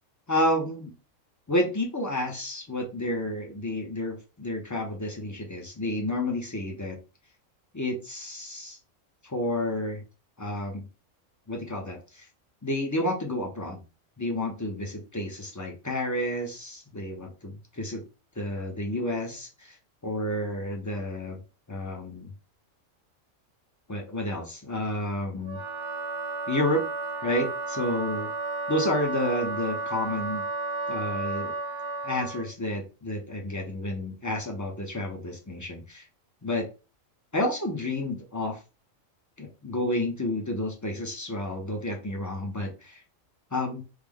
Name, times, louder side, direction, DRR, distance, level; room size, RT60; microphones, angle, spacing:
voice 1, 0.3-0.9 1.5-7.0 7.7-8.8 9.2-10.0 10.4-10.9 11.5-12.3 12.6-13.8 14.2-18.0 18.4-19.8 20.0-21.4 21.7-22.3 23.9-25.6 26.5-26.8 27.2-28.3 28.7-30.5 30.9-31.5 32.0-36.1 36.4-36.7 37.3-38.6 39.4-43.0 43.5-43.8, left 1 dB, 25° left, 0 dB, 0.4 m, -30 dB
Wind instrument woodwind instrument, 25.4-32.5, right 3 dB, 60° right, 0.8 m, -33 dB
3.2 x 2.1 x 3.6 m, 0.32 s
omnidirectional pair, 1.4 m